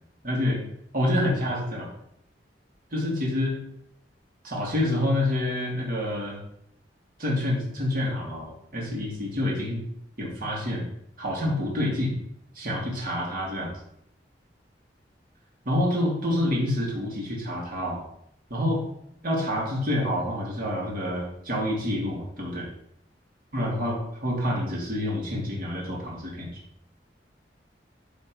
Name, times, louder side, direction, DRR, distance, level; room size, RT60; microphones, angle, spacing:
voice 1, 0.2-0.6 0.9-1.9 2.9-3.6 4.4-6.4 7.2-9.8 10.2-10.9 11.2-12.1 12.6-13.7 15.7-18.0 18.5-18.8 19.2-22.7 23.5-26.6, left 1 dB, 55° right, -2 dB, 2.3 m, -27 dB
11.0 x 3.7 x 4.7 m, 0.73 s
head